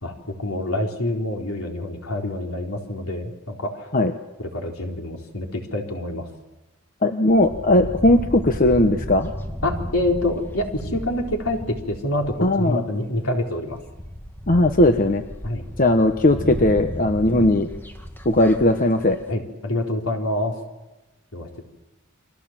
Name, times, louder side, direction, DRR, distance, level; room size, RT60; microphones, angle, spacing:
voice 1, 0.0-3.9 4.4-6.3 9.6-13.8 14.6-14.7 15.4-15.6 19.3-20.6 21.3-21.6, left 1 dB, 75° left, 1 dB, 4.1 m, -26 dB
voice 2, 7.0-9.3 12.4-12.8 14.5-15.2 15.8-17.7 18.2-19.2, left 1 dB, 40° left, 7 dB, 1.1 m, -18 dB
sound 1, 7.3-12.8 13.4-13.5 13.7-19.2, equal, 10° left, 2.0 m, -34 dB
29.5 x 24.0 x 7.6 m, 1.1 s
head